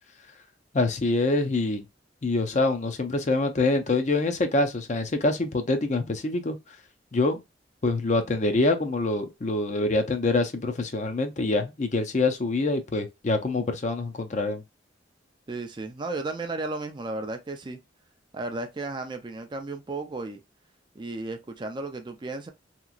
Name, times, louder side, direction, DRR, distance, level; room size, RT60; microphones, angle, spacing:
voice 1, 0.7-1.8 2.2-6.6 7.1-7.4 7.8-14.6, left 2 dB, 40° left, 0.5 m, -25 dB
voice 2, 15.5-17.8 18.3-20.4 21.0-22.5, right 2 dB, 25° right, 0.4 m, -34 dB
2.9 x 2.3 x 2.4 m
head